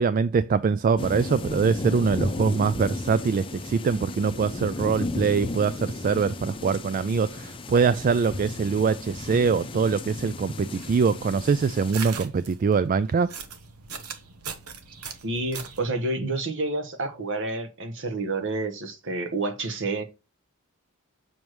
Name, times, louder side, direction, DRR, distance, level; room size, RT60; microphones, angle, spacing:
voice 1, 0.0-13.3, right 5 dB, 40° right, 0.3 m, -23 dB
sound 1, 1.0-11.9, left 2 dB, 25° left, 0.6 m, -34 dB
sound 2, 10.6-15.9, right 6 dB, 85° right, 1.0 m, -40 dB
voice 2, 15.2-20.0, right 2 dB, 60° right, 1.2 m, -29 dB
7.1 x 6.0 x 3.1 m
head